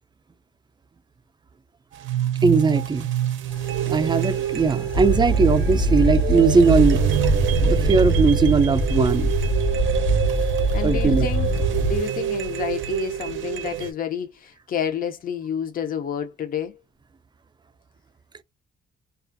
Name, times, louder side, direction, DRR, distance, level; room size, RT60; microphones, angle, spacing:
sound 1, 1.9-13.9, right 11 dB, 75° right, 0.5 m, -27 dB
voice 1, 2.4-3.1 3.9-7.0 7.6-9.4 10.8-11.3, right 4 dB, 20° right, 0.4 m, -19 dB
sound 2, 3.5-12.0, right 1 dB, 80° left, 1.1 m, -23 dB
voice 2, 10.4-16.8, left 8 dB, 45° left, 0.6 m, -30 dB
2.4 x 2.4 x 2.5 m
cardioid pair, 90°, 20 cm